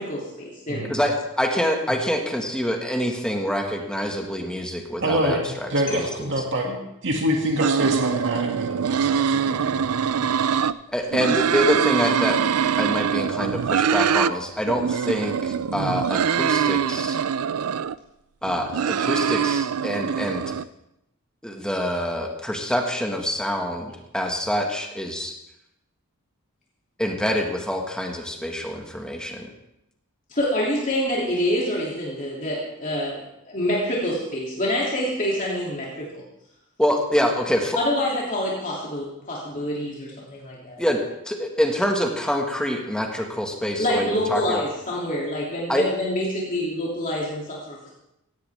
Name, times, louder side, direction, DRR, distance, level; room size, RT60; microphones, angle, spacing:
voice 1, 0.0-1.0 30.3-36.2 37.7-40.8 43.8-47.9, left 1 dB, 35° left, -5 dB, 2.8 m, -26 dB
voice 2, 0.9-6.3 10.9-12.5 12.8-17.2 18.4-20.5 21.4-25.4 27.0-29.5 36.8-37.8 40.8-44.6 45.7-45.9, equal, 5° left, 2 dB, 1.7 m, -26 dB
voice 3, 5.0-10.6, equal, 55° right, 1 dB, 2.2 m, -26 dB
sound 1, 7.6-10.7 11.1-14.3 14.7-18.0 18.4-20.6, right 7 dB, 75° right, 0.4 m, -23 dB
17.0 x 16.5 x 3.5 m, 0.84 s
head